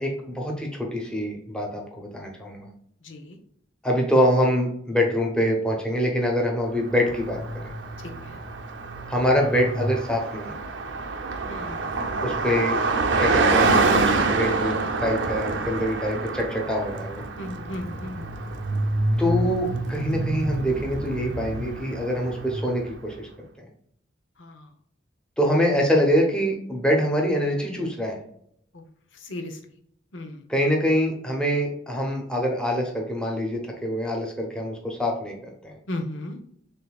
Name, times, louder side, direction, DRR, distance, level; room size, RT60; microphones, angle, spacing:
voice 1, 0.0-2.7 3.8-7.4 9.1-10.5 12.2-12.8 13.2-17.2 19.1-23.3 25.4-28.2 30.5-35.4 35.6-35.8, equal, 5° left, 0 dB, 1.0 m, -24 dB
voice 2, 3.0-3.4 8.0-8.4 11.5-11.9 17.4-18.3 24.4-24.6 28.7-28.8 29.2-29.6 30.1-30.4 35.9-36.4, left 1 dB, 80° left, 4 dB, 0.8 m, -35 dB
Car passing by, 6.9-22.9, right 3 dB, 75° right, 0.6 m, -26 dB
6.6 x 2.8 x 2.3 m, 0.68 s
head